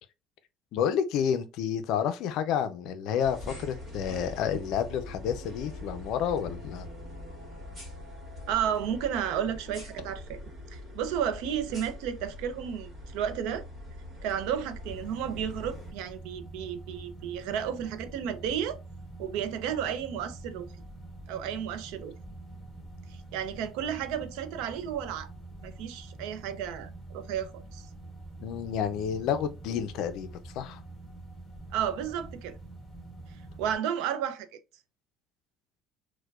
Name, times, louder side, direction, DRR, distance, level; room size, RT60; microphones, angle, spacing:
voice 1, 0.7-6.9 28.4-30.8, left 8 dB, 60° left, 0.4 m, -30 dB
sound 1, 3.2-15.9, left 1 dB, 20° right, 1.6 m, -43 dB
voice 2, 8.5-10.4 10.7-13.7 14.2-18.8 19.2-20.7 21.3-22.1 23.1-25.3 25.6-27.9 31.7-32.6 33.6-34.5, right 9 dB, 85° right, 0.5 m, -32 dB
sound 2, 14.8-33.8, right 2 dB, 5° left, 1.7 m, -46 dB
4.5 x 2.1 x 2.3 m
cardioid pair, 170°, 0 cm